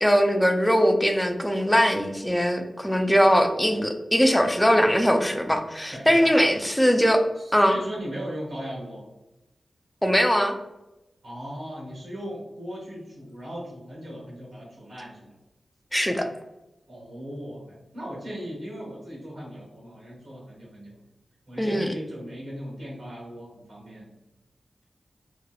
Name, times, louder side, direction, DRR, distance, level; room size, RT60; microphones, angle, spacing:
voice 1, 0.0-7.2 7.5-7.8 10.0-10.5 15.9-16.3 21.6-21.9, equal, 5° left, 5 dB, 0.4 m, -21 dB
voice 2, 5.9-6.3 7.4-9.1 11.2-15.3 16.9-21.0 21.5-24.1, equal, 75° right, -7 dB, 1.2 m, -38 dB
2.8 x 2.0 x 2.2 m, 0.96 s
cardioid pair, 40°, 0 cm